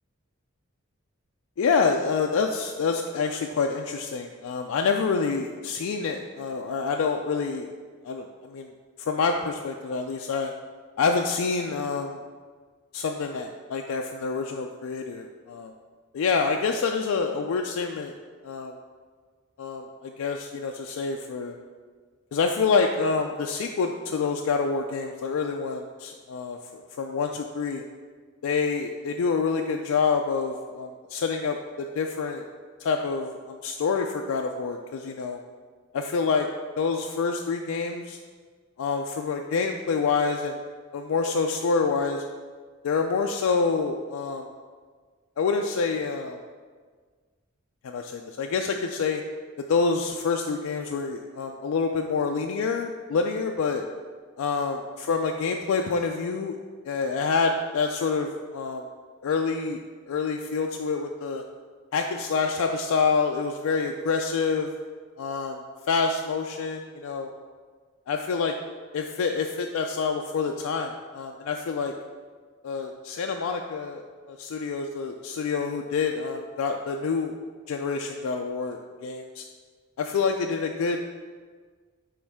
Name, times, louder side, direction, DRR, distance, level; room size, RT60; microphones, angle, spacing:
voice 1, 1.6-7.7 8.0-8.7 9.0-10.5 11.0-12.2 12.9-15.7 16.1-18.1 18.4-18.7 19.6-21.6 22.3-27.8 28.4-32.4 32.8-35.4 35.9-36.5 36.8-38.2 38.8-40.6 40.9-42.2 42.8-44.5 45.4-46.4 47.8-49.2 49.7-53.8 54.4-54.8 55.1-56.6 56.9-58.8 59.2-61.4 61.9-64.7 65.2-65.6 65.9-67.3 68.1-68.5 68.9-71.9 72.6-77.4 77.7-79.4 80.0-81.1, left 4 dB, 90° left, 3 dB, 0.4 m, -27 dB
9.3 x 3.1 x 3.5 m, 1.5 s
head